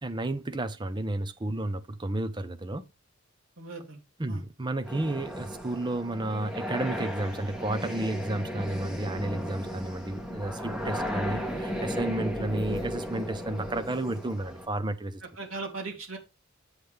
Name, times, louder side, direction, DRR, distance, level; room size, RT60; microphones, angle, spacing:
voice 1, 0.0-2.9 4.2-15.2, right 1 dB, 20° right, 0.7 m, -32 dB
voice 2, 3.6-4.0 4.3-4.4 15.2-16.2, right 3 dB, 70° right, 2.7 m, -38 dB
sound 1, 4.9-14.7, equal, 5° right, 1.6 m, -35 dB
8.1 x 7.6 x 3.4 m
head